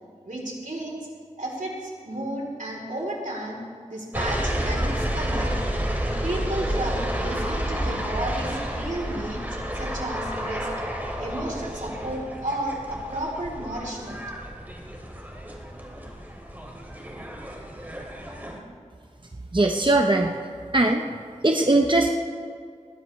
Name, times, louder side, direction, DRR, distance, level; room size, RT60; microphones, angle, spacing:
voice 1, 0.2-1.0 1.4-3.6 3.9-5.5 6.2-9.4 9.7-10.7 11.2-14.2, right 1 dB, 85° right, -2 dB, 3.5 m, -32 dB
sound 1, 4.1-18.6, equal, 15° right, 2.8 m, -30 dB
voice 2, 19.5-20.3 20.7-21.0 21.4-22.1, right 2 dB, 40° right, 2 dB, 0.9 m, -20 dB
21.0 x 16.0 x 3.3 m, 2.1 s
wide cardioid pair, 45°, 13 cm